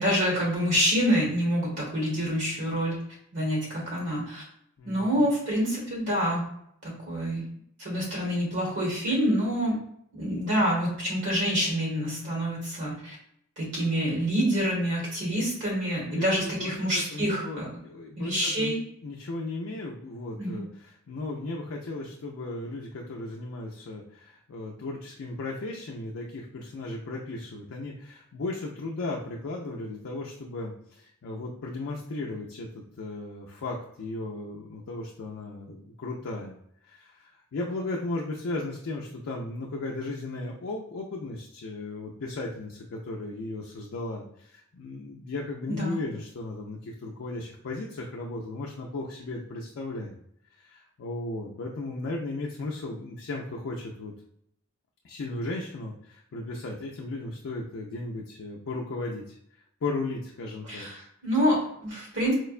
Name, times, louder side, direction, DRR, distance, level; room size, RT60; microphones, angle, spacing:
voice 1, 0.0-3.0 3.3-4.4 4.8-6.5 6.8-7.5 7.8-9.8 10.1-13.1 13.6-17.7 18.2-18.8 20.4-20.6 45.7-46.0 60.6-62.3, equal, 55° right, -3 dB, 1.3 m, -27 dB
voice 2, 4.8-5.3 16.1-18.8 19.0-36.6 36.8-50.1 50.6-54.1 55.0-59.4 59.8-60.9, left 2 dB, 60° left, -1 dB, 0.4 m, -36 dB
4.4 x 2.1 x 2.4 m, 0.70 s
head